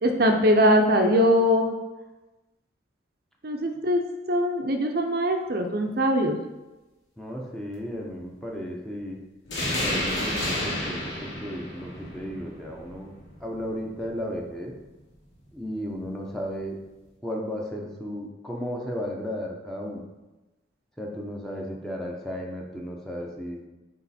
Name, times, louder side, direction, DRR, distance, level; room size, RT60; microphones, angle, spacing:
voice 1, 0.0-1.8 3.4-4.0 4.3-6.4, equal, 55° right, 4 dB, 0.6 m, -21 dB
voice 2, 7.2-9.2 9.7-13.1 13.4-14.7 15.5-16.8 17.2-20.0 21.0-23.6, equal, 5° left, -1 dB, 0.8 m, -34 dB
sound 1, 9.4-14.6, left 1 dB, 75° left, 2.2 m, -31 dB
8.7 x 3.2 x 4.2 m, 1.1 s
head